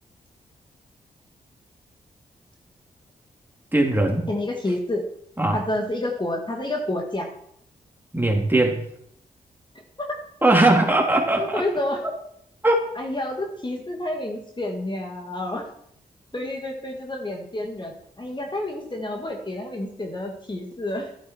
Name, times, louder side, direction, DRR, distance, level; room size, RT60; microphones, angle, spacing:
voice 1, 3.7-4.3 5.4-5.6 8.1-8.8 10.4-11.6 12.6-12.8, right 2 dB, 15° right, 0 dB, 3.5 m, -19 dB
voice 2, 4.3-5.0 5.5-7.3 10.0-10.2 11.4-12.0 13.0-15.7 16.3-21.1, left 1 dB, 30° left, 2 dB, 2.4 m, -29 dB
13.0 x 11.5 x 4.7 m, 0.70 s
cardioid pair, 55°, 16 cm